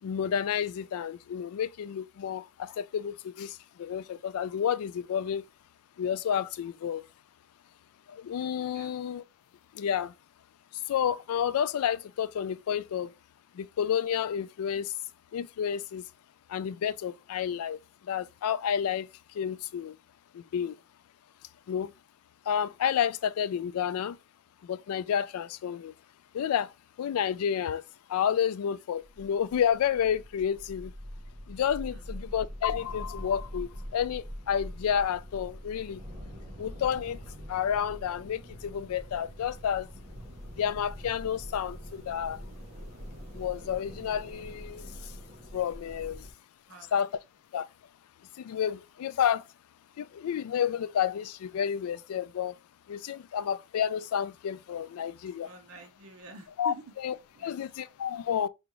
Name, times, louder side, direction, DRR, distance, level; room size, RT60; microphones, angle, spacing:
voice 1, 0.0-5.5 6.0-7.1 8.1-9.2 9.7-10.1 10.9-13.1 13.5-14.9 15.3-16.0 16.5-20.0 20.3-20.8 21.7-21.9 22.5-24.2 24.6-25.9 26.3-26.7 27.0-27.8 28.1-30.9 31.5-36.0 36.6-37.2 37.5-39.9 40.6-42.4 43.3-45.2 45.5-46.3 46.9-47.1 47.5-47.7 48.3-49.5 50.0-52.6 52.9-55.5 56.6-56.7 57.0-57.1 57.4-58.5, left 8 dB, 75° left, 0.3 m, -30 dB
sound 1, 29.0-46.3, equal, 30° right, 0.7 m, -44 dB
voice 2, 46.7-47.0 55.3-56.9 57.3-57.6, right 3 dB, 65° right, 0.7 m, -48 dB
5.0 x 2.4 x 2.9 m
head